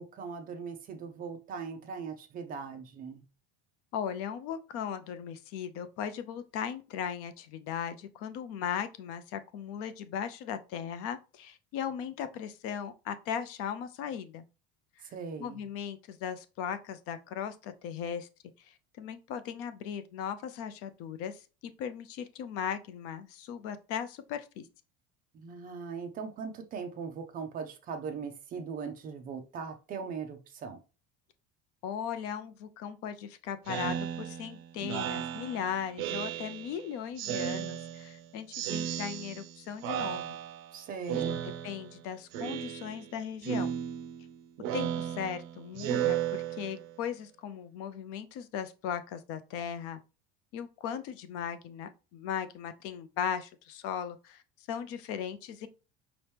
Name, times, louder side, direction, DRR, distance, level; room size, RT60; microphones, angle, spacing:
voice 1, 0.0-3.2 15.1-15.6 25.3-30.8 40.7-41.4, right 5 dB, 30° right, 0.5 m, -39 dB
voice 2, 3.9-14.4 15.4-18.3 18.6-21.4 21.8-24.6 31.8-40.4 41.1-41.2 41.6-43.7 44.7-50.0 50.5-54.4 54.7-55.7, left 8 dB, 50° left, 0.5 m, -37 dB
Speech synthesizer, 33.7-36.8 37.2-38.2 38.5-39.5 39.8-40.7 41.1-42.0 42.3-43.1 43.4-47.0, right 10 dB, 70° right, 0.6 m, -35 dB
5.3 x 2.9 x 3.3 m
cardioid pair, 165°, 29 cm